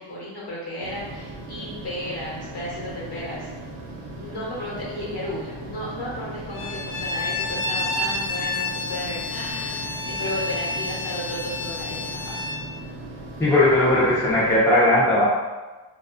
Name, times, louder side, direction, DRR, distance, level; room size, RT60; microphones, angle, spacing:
voice 1, 0.0-3.5 4.1-12.4, left 1 dB, 55° left, -6 dB, 1.0 m, -34 dB
sound 1, 0.8-14.6, right 1 dB, 80° right, 0.7 m, -38 dB
Bowed string instrument, 6.5-12.6, left 3 dB, 80° left, 0.6 m, -29 dB
voice 2, 13.4-15.3, left 1 dB, 5° left, -8 dB, 0.4 m, -18 dB
2.5 x 2.3 x 2.4 m, 1.2 s
wide cardioid pair, 160°, 47 cm